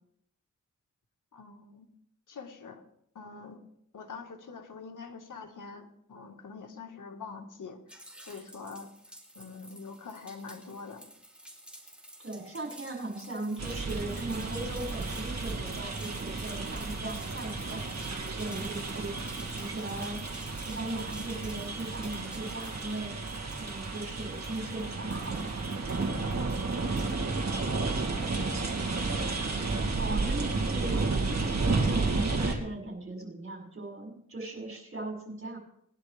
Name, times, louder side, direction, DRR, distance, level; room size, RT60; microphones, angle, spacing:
voice 1, 1.3-1.9 2.3-2.8 3.2-3.6 3.9-11.0 26.8-27.1, left 4 dB, 80° left, 3 dB, 1.7 m, -45 dB
sound 1, 7.9-27.1, right 1 dB, 5° right, 3.4 m, -51 dB
voice 2, 12.2-20.2 20.5-23.1 23.6-25.6 28.7-29.2 29.8-35.6, right 2 dB, 45° right, 0 dB, 6.0 m, -38 dB
sound 2, 13.6-32.5, right 3 dB, 60° right, 2.6 m, -32 dB
20.5 x 11.5 x 3.5 m, 0.69 s
cardioid pair, 60°, 31 cm